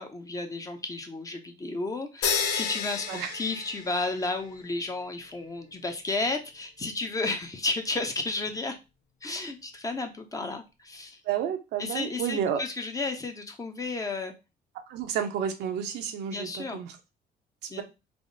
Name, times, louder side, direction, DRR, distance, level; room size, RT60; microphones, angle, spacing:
voice 1, 0.0-8.8 9.2-11.2 11.8-14.3 16.3-16.8 17.7-17.8, left 3 dB, 20° left, 5 dB, 0.7 m, -32 dB
sound 1, 2.2-4.4, left 6 dB, 90° left, 0.7 m, -30 dB
voice 2, 11.2-12.6 14.9-17.0 17.6-17.8, right 8 dB, 80° right, 5 dB, 0.7 m, -31 dB
3.5 x 2.0 x 3.8 m, 0.26 s
cardioid pair, 110°, 17 cm